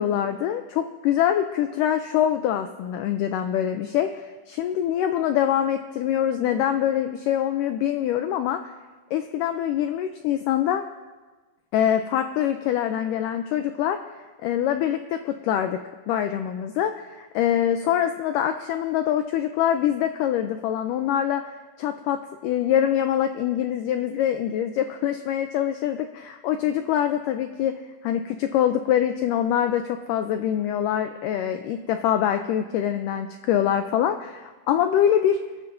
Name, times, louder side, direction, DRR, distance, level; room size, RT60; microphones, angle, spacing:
voice 1, 0.0-8.6 9.1-10.8 11.7-14.0 14.4-15.8 16.1-21.4 21.8-27.7 28.0-35.4, left 10 dB, 90° left, 7 dB, 1.8 m, -24 dB
26.0 x 12.5 x 2.6 m, 1.3 s
omnidirectional pair, 4.4 m